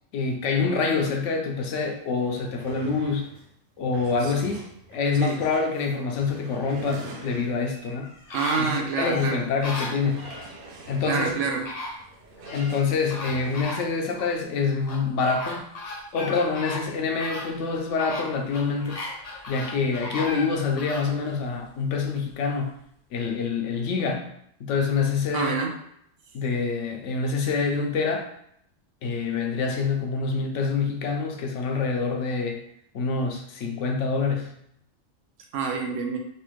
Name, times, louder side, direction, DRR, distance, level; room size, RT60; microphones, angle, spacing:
voice 1, 0.1-3.3 3.8-8.1 8.6-10.3 10.9-11.4 12.5-15.7 16.1-19.0 19.5-22.8 23.1-24.3 24.6-25.6 26.3-28.3 29.0-32.6 32.9-34.5, left 4 dB, 75° left, 3 dB, 0.9 m, -26 dB
sound 1, 1.8-1.9 2.1-7.8 8.3-8.5 8.9-9.0 9.9-13.8, right 2 dB, 55° right, 0.7 m, -45 dB
sound 2, 7.6-10.5 11.3-11.4 11.6-12.8 13.1-14.3 14.9-21.1 21.6-21.7, left 2 dB, 45° left, 0.5 m, -36 dB
voice 2, 8.3-9.4 11.0-11.7 25.3-25.7 35.5-36.2, right 5 dB, 80° right, 2 dB, 0.9 m, -27 dB
3.2 x 2.4 x 3.0 m, 0.71 s
omnidirectional pair, 1.3 m